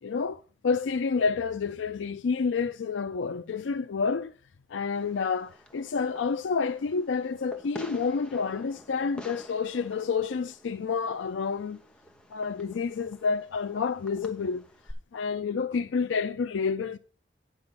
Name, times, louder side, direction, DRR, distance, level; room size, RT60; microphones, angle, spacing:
voice 1, 0.0-4.3 4.7-11.8 12.3-14.7 15.1-17.0, left 5 dB, 85° left, 0.4 m, -29 dB
Fireworks, 4.9-14.9, equal, 5° left, 0.9 m, -49 dB
9.6 x 5.4 x 6.3 m
head